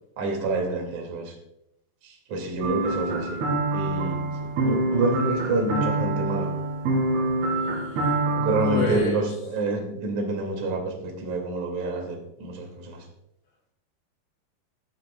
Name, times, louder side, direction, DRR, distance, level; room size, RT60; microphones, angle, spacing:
voice 1, 0.2-1.3 2.0-3.5 3.7-6.5 8.3-13.0, right 2 dB, 50° right, 1 dB, 3.6 m, -28 dB
sound 1, 2.6-9.0, right 2 dB, 85° right, 4.5 m, -26 dB
voice 2, 7.6-8.2 8.6-9.2, left 2 dB, 40° left, -3 dB, 3.3 m, -29 dB
22.5 x 9.0 x 2.4 m, 0.80 s
omnidirectional pair, 4.5 m